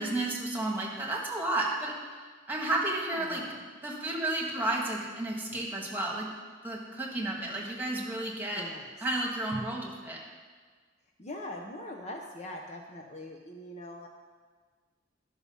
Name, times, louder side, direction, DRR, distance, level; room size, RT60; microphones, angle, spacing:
voice 1, 0.0-1.9 2.5-3.4 3.8-6.3 6.6-8.7 9.0-10.2, right 2 dB, 10° right, -2 dB, 1.6 m, -32 dB
voice 2, 2.9-3.6 8.6-9.0 11.2-14.1, left 1 dB, 35° left, 2 dB, 0.7 m, -42 dB
11.5 x 6.1 x 5.5 m, 1.5 s
head